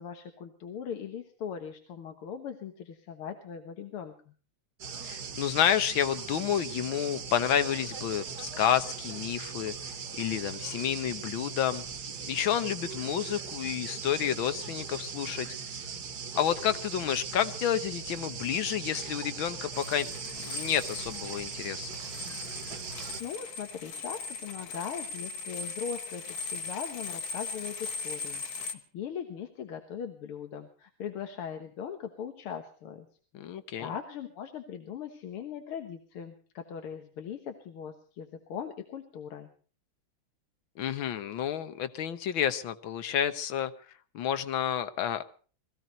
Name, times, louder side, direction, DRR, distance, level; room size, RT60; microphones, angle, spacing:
voice 1, 0.0-4.3 23.2-33.1 33.8-39.5, left 7 dB, 90° left, 6 dB, 2.2 m, -40 dB
sound 1, 4.8-23.2, right 6 dB, 50° right, 1.8 m, -39 dB
voice 2, 5.0-9.7 10.2-11.8 12.3-15.5 16.3-20.1 20.3-21.9 33.3-33.9 40.8-43.7 44.1-45.2, left 9 dB, 70° left, 12 dB, 1.8 m, -30 dB
sound 2, 19.7-28.7, left 3 dB, 50° left, 1.5 m, -39 dB
21.0 x 15.0 x 3.9 m, 0.41 s
omnidirectional pair, 2.3 m